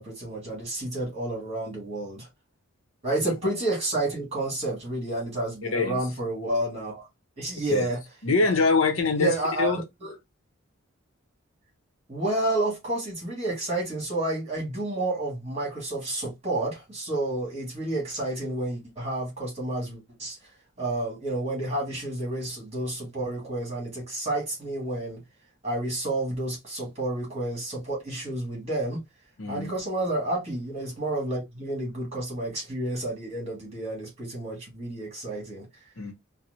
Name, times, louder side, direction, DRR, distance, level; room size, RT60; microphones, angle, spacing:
voice 1, 0.0-2.3 3.0-7.1 7.4-8.0 9.2-9.7 10.0-10.1 12.1-20.4 20.8-25.2 25.6-29.0 29.5-35.7, right 2 dB, 30° right, 1.7 m, -30 dB
voice 2, 5.6-6.0 7.7-7.9 8.2-9.3 9.6-9.8 29.4-29.7 36.0-36.1, left 4 dB, 70° left, 0.8 m, -24 dB
4.2 x 2.1 x 2.6 m
head